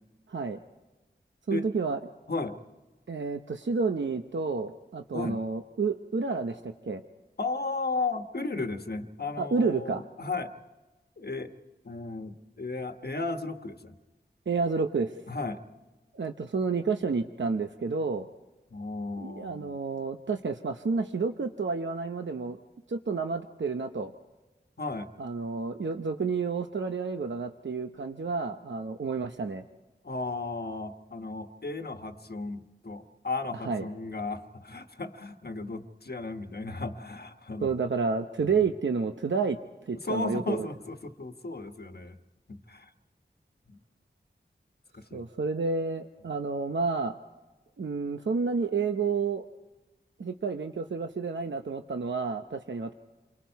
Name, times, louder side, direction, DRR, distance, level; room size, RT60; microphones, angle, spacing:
voice 1, 0.3-0.6 1.5-2.0 3.1-7.0 9.4-10.0 14.5-15.1 16.1-18.3 19.2-22.6 22.9-24.1 25.2-29.6 33.6-33.8 37.6-39.6 39.9-40.7 45.1-47.1 47.8-49.4 50.2-52.9, right 4 dB, 80° right, 6 dB, 0.8 m, -30 dB
voice 2, 2.3-2.6 5.1-5.4 7.4-10.5 11.2-11.5 11.8-13.9 15.3-15.6 18.7-19.7 24.8-25.1 30.0-37.7 38.4-38.7 40.0-42.2 42.5-42.9 43.7-43.8 44.9-45.2, left 3 dB, 55° left, 7 dB, 1.3 m, -35 dB
28.5 x 23.5 x 4.7 m, 1.1 s
wide cardioid pair, 65°, 19 cm